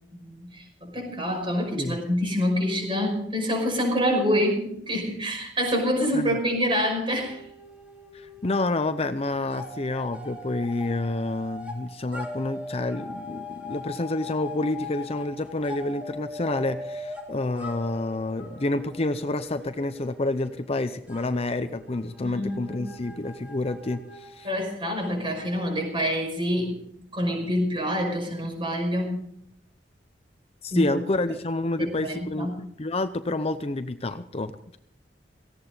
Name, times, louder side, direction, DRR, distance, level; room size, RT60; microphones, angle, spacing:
voice 1, 0.2-7.4 22.2-22.8 24.4-26.8 27.1-29.3 30.7-31.0 31.8-32.6, equal, 30° right, 3 dB, 5.7 m, -26 dB
sound 1, 7.1-8.7 8.9-26.0, left 2 dB, 10° right, 3.1 m, -41 dB
voice 2, 8.1-24.5 30.6-32.5 32.8-34.8, left 2 dB, 35° left, 10 dB, 0.7 m, -29 dB
18.0 x 16.0 x 4.0 m, 0.71 s
head